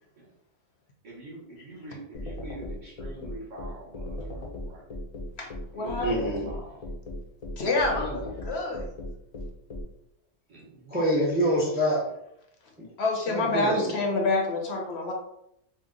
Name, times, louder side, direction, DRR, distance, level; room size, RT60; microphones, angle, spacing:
voice 1, 1.0-4.9 5.7-6.8 7.6-8.6 10.5-11.0, right 1 dB, 45° right, -4 dB, 0.9 m, -44 dB
sound 1, 2.1-9.8, left 1 dB, 50° left, 0.5 m, -36 dB
voice 2, 5.4-6.3 7.6-8.8 13.0-15.1, left 2 dB, 65° left, 1 dB, 0.8 m, -28 dB
voice 3, 6.0-6.5 10.9-12.1 12.8-12.9 13.3-13.9, equal, 10° right, -4 dB, 0.5 m, -26 dB
2.8 x 2.1 x 3.7 m, 0.79 s
omnidirectional pair, 1.2 m